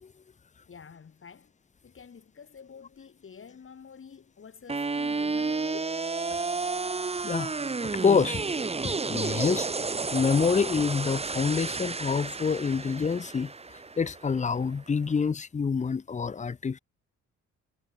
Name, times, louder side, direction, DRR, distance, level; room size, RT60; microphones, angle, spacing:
voice 1, 0.7-1.5 1.8-6.0, left 6 dB, 45° left, 6.6 m, -48 dB
sound 1, 4.7-14.7, right 4 dB, 20° right, 1.3 m, -31 dB
voice 2, 7.2-7.5 8.0-8.4 9.1-9.7 10.1-13.5 14.0-16.8, left 5 dB, 25° left, 0.8 m, -26 dB
cardioid pair, 90°, 30 cm